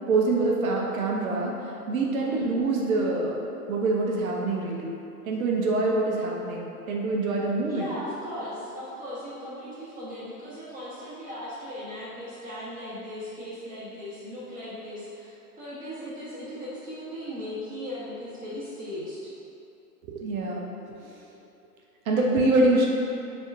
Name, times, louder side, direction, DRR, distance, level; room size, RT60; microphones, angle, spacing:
voice 1, 0.1-3.4 3.7-4.9 5.2-7.9 20.1-21.1 22.1-22.9, right 2 dB, 60° right, -2 dB, 0.7 m, -25 dB
voice 2, 2.2-2.5 7.7-19.3, equal, 20° right, -11 dB, 1.2 m, -38 dB
5.0 x 3.4 x 2.5 m, 2.7 s
figure-of-eight pair, 105°, 47 cm